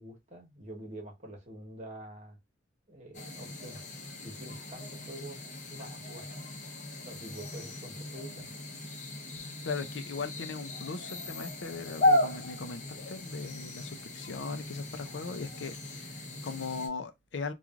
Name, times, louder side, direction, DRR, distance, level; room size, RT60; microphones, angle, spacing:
voice 1, 0.0-2.4 2.9-3.8 4.2-5.4 5.7-6.2 7.0-8.5, right 1 dB, 35° right, 1.1 m, -46 dB
sound 1, 3.1-16.9, left 1 dB, 40° left, 0.7 m, -35 dB
voice 2, 9.6-17.5, left 4 dB, 65° left, 0.5 m, -39 dB
3.1 x 2.3 x 2.3 m
head